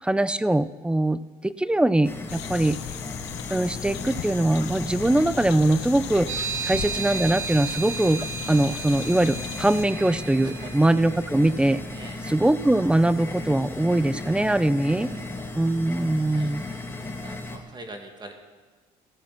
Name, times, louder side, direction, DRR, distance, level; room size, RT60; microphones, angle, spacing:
voice 1, 0.0-2.8 3.5-6.3 6.6-11.8 12.3-15.1 15.6-16.6, right 1 dB, 5° right, 16 dB, 0.5 m, -22 dB
sound 1, 2.0-17.6, left 2 dB, 15° left, 2.0 m, -37 dB
sound 2, 2.3-9.9, left 12 dB, 90° left, 0.9 m, -37 dB
sound 3, 6.3-11.0, right 7 dB, 90° right, 2.9 m, -34 dB
voice 2, 10.4-10.7 11.9-12.2 15.0-15.4 16.3-16.5 17.2-18.3, right 2 dB, 25° right, 3 dB, 2.2 m, -42 dB
14.5 x 14.0 x 6.0 m, 1.3 s
cardioid pair, 110°, 17 cm